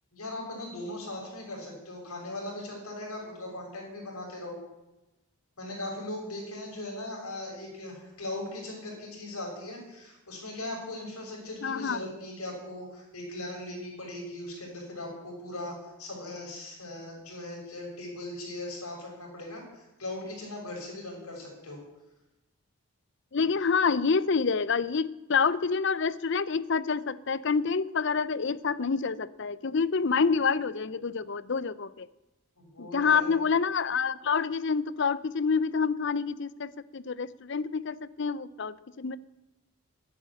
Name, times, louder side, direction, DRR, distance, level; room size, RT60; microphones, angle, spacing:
voice 1, 0.1-4.5 5.6-21.8 32.6-33.3, left 1 dB, 80° left, -1 dB, 6.4 m, -39 dB
voice 2, 11.6-12.0 23.3-32.1 32.8-39.2, left 5 dB, 55° left, 18 dB, 0.6 m, -27 dB
11.0 x 11.0 x 9.7 m, 0.99 s
head